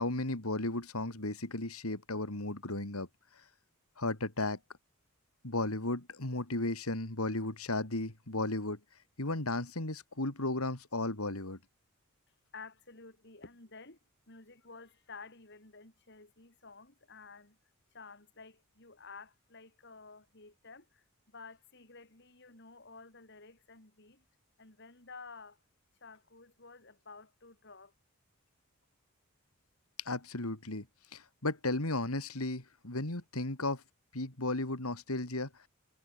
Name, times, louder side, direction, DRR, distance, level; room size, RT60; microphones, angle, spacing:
voice 1, 0.0-3.1 3.4-3.5 4.0-4.6 5.4-8.8 9.2-11.6 30.0-30.8 31.1-33.8 34.1-35.7, left 2 dB, 85° left, 3.4 m, -35 dB
voice 2, 12.5-14.0 14.3-17.6 17.9-24.2 24.6-25.6 26.0-27.9, left 4 dB, 50° left, 4.2 m, -52 dB
head